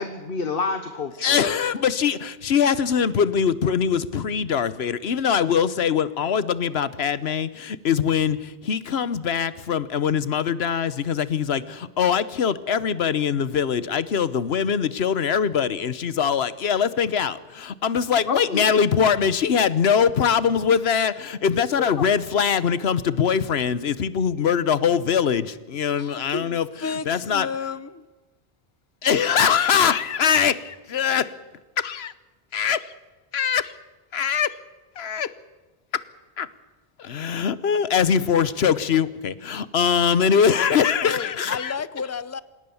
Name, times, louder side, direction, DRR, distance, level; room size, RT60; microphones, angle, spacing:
voice 1, 0.0-1.4 18.3-18.8 21.8-22.0, left 4 dB, 60° left, 1.3 m, -28 dB
voice 2, 1.2-27.5 29.0-31.3 31.8-32.1 32.5-32.9 33.3-33.7 34.1-34.6 35.0-35.3 35.9-36.0 36.4-36.5 37.0-41.8, left 7 dB, 75° left, 1.2 m, -22 dB
voice 3, 26.0-28.0 41.0-42.4, left 5 dB, 20° left, 0.6 m, -32 dB
27.5 x 17.5 x 7.1 m
omnidirectional pair, 1.1 m